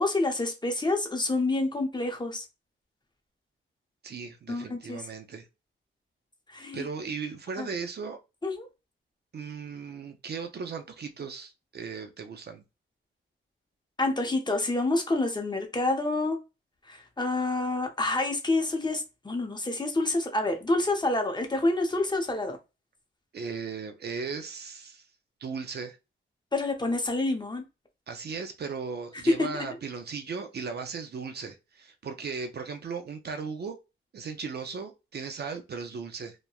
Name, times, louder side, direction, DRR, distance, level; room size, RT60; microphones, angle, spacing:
voice 1, 0.0-2.4 4.5-5.0 6.5-6.9 7.6-7.7 8.4-8.7 14.0-16.4 16.9-22.6 26.5-27.6 29.3-29.5, left 2 dB, 20° left, 0.6 m, -28 dB
voice 2, 4.0-5.5 6.7-8.2 9.3-12.6 23.3-25.0 25.4-26.0 28.1-33.8 34.1-36.3, right 5 dB, 50° right, 0.5 m, -37 dB
2.9 x 2.1 x 2.3 m
wide cardioid pair, 95°, 21 cm